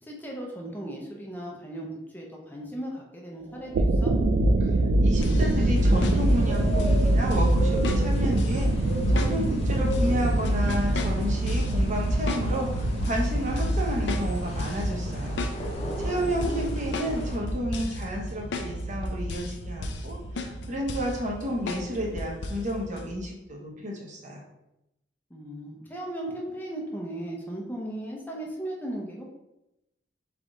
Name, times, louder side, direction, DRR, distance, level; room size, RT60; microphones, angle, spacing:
voice 1, 0.0-4.1 15.8-16.6 25.3-29.3, right 1 dB, 10° left, -2 dB, 0.6 m, -37 dB
sound 1, 3.6-23.2, right 1 dB, 85° right, 0.4 m, -26 dB
voice 2, 5.0-15.4 16.0-24.4, equal, 45° right, -1 dB, 0.9 m, -31 dB
sound 2, 5.2-7.0 7.3-7.5 7.8-8.7 9.2-10.1 10.4-11.7 12.3-12.5 12.8-13.3 13.6-13.8 14.1-14.8 15.1-15.9 16.4-17.2 17.5-18.1 18.5-18.7 19.0-19.6 19.8-20.1 20.4-21.2 21.7-21.9 22.2-22.6 23.0-23.1, left 3 dB, 70° left, 0.5 m, -34 dB
sound 3, 5.7-17.4, equal, 35° left, 0.9 m, -37 dB
3.6 x 3.5 x 3.8 m, 0.91 s
head